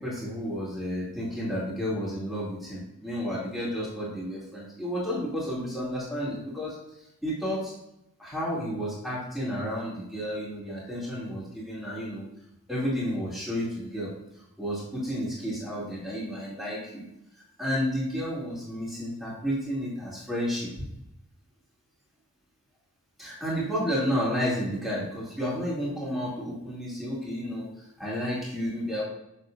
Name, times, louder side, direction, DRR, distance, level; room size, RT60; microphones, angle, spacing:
voice 1, 0.0-6.7 7.2-7.7 8.2-12.2 12.7-14.1 14.6-17.0 17.6-20.7 23.2-27.7 28.0-29.0, equal, ahead, -8 dB, 2.3 m, -31 dB
7.3 x 6.5 x 2.5 m, 0.83 s
head